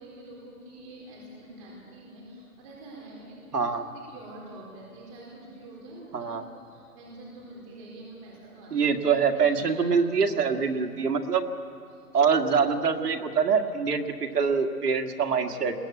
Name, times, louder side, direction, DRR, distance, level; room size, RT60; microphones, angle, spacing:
voice 1, 0.0-3.7 3.9-8.9 9.3-9.8 10.2-10.3 11.9-12.0 15.2-15.4, right 1 dB, 25° right, -4 dB, 4.2 m, -46 dB
voice 2, 3.5-3.8 6.1-6.4 8.7-11.5 12.1-15.7, right 5 dB, 90° right, 4 dB, 2.0 m, -24 dB
21.0 x 17.5 x 8.6 m, 2.8 s
hypercardioid pair, 170°, 46 cm